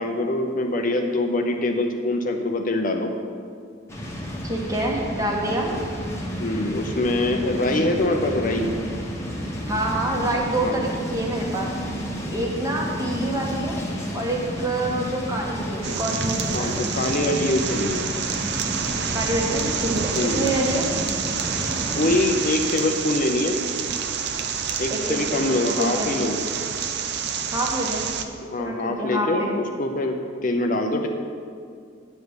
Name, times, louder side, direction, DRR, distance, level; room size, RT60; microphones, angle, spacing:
voice 1, 0.0-3.1 6.4-8.7 10.6-10.8 16.5-18.1 20.1-20.5 21.9-23.6 24.8-26.4 28.5-31.1, left 2 dB, 45° left, 4 dB, 0.7 m, -24 dB
sound 1, 3.9-22.3, equal, 15° left, 1.3 m, -31 dB
voice 2, 4.4-5.8 9.7-11.7 12.3-13.8 14.1-16.9 19.1-20.9 24.9-26.1 27.5-28.1 28.6-29.6, right 1 dB, 15° right, -2 dB, 1.5 m, -27 dB
sound 2, 15.8-28.3, right 6 dB, 60° right, 0.6 m, -28 dB
9.5 x 5.2 x 8.0 m, 2.2 s
head